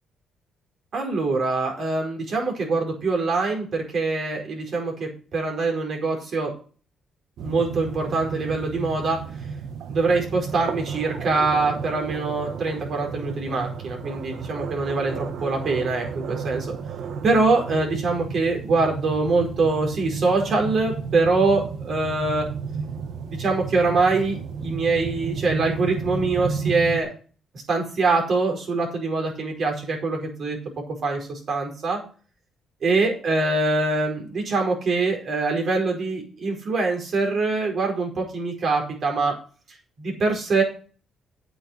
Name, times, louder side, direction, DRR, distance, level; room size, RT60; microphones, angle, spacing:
voice 1, 0.9-6.5 7.4-9.2 9.9-16.7 17.2-22.5 23.3-27.1 27.7-30.6 31.0-32.0 32.8-39.3 40.0-40.6, right 3 dB, 55° right, 1 dB, 4.8 m, -24 dB
sound 1, 7.4-27.0, right 6 dB, 75° right, 1.2 m, -33 dB
8.6 x 6.9 x 6.6 m, 0.39 s
cardioid pair, 90°, 0 cm